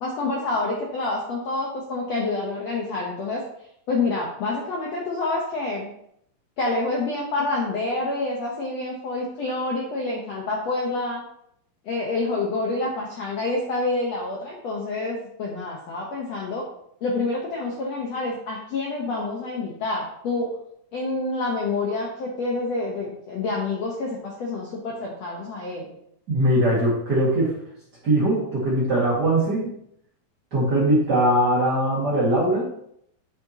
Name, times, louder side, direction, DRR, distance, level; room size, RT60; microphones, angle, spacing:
voice 1, 0.0-3.4 3.9-5.9 6.6-11.2 11.8-16.7 17.0-20.5 20.9-25.9, left 3 dB, 90° left, -2 dB, 1.4 m, -27 dB
voice 2, 26.3-27.5 28.0-29.7 30.5-32.7, right 1 dB, 40° right, -7 dB, 1.6 m, -21 dB
8.5 x 6.9 x 2.9 m, 0.73 s
omnidirectional pair, 4.6 m